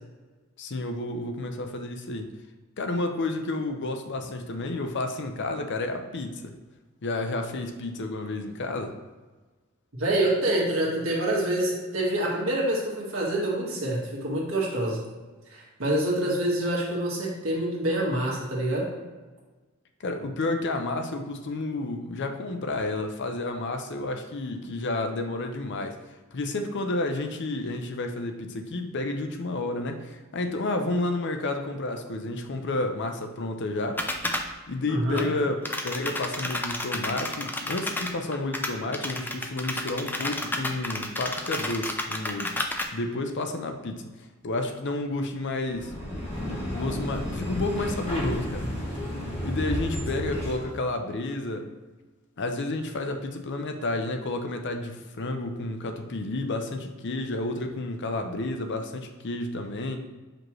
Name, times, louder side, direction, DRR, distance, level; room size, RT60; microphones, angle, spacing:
voice 1, 0.6-2.3 2.8-6.5 7.0-9.0 20.0-26.0 26.3-34.0 34.7-42.6 42.9-44.1 44.4-45.9 46.7-48.7 49.4-51.7 52.4-60.0, left 2 dB, 55° left, 6 dB, 0.6 m, -31 dB
voice 2, 10.0-15.0 15.5-18.9 34.9-35.2, right 1 dB, 65° right, -3 dB, 1.7 m, -26 dB
sound 1, 34.0-34.5 35.1-35.2 35.6-42.8, left 1 dB, 10° left, 0.4 m, -31 dB
sound 2, 45.7-50.7, left 1 dB, 30° left, 1.4 m, -32 dB
6.1 x 5.1 x 3.1 m, 1.3 s
head